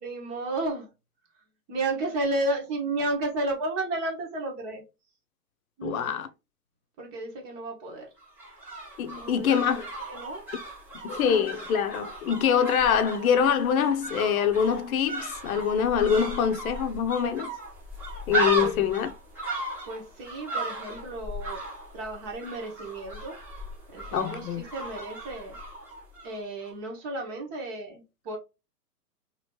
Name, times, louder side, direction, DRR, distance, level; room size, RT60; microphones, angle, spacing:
voice 1, 0.0-0.9 1.7-4.8 5.8-6.1 7.0-8.1 9.1-10.4 18.6-18.8 19.9-21.6 21.9-23.4 23.9-25.6 26.2-28.4, right 2 dB, 30° right, 1.0 m, -33 dB
voice 2, 5.8-6.3 9.0-9.9 11.0-17.5 18.3-19.1 24.1-24.6, left 8 dB, 60° left, 0.7 m, -24 dB
sound 1, 8.2-26.4 26.6-26.7, right 2 dB, 5° right, 0.4 m, -36 dB
2.9 x 2.7 x 3.0 m
hypercardioid pair, 120°, 48 cm